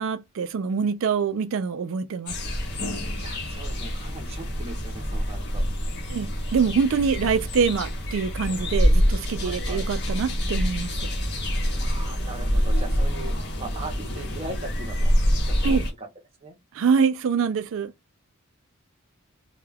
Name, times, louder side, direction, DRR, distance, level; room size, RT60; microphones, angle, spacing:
voice 1, 0.0-2.3 6.1-10.9 15.6-15.8 16.7-17.9, right 6 dB, 65° right, 0.4 m, -25 dB
sound 1, 2.3-15.9, equal, 55° left, 0.8 m, -26 dB
voice 2, 3.2-5.7 9.4-9.8 11.8-15.1 15.5-16.1 16.4-16.6, right 2 dB, 30° right, 0.7 m, -39 dB
2.2 x 2.2 x 3.2 m
head